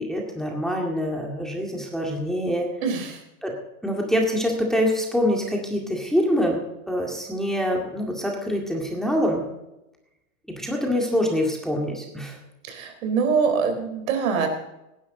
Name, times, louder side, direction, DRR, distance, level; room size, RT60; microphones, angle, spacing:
voice 1, 0.0-2.7 3.4-3.5 3.8-6.6 6.9-9.4 10.5-12.4, equal, ahead, -1 dB, 2.0 m, -25 dB
voice 2, 2.8-3.2 12.7-14.5, right 6 dB, 70° right, 5 dB, 4.0 m, -24 dB
18.5 x 11.0 x 3.9 m, 0.91 s
supercardioid pair, 145°, 42 cm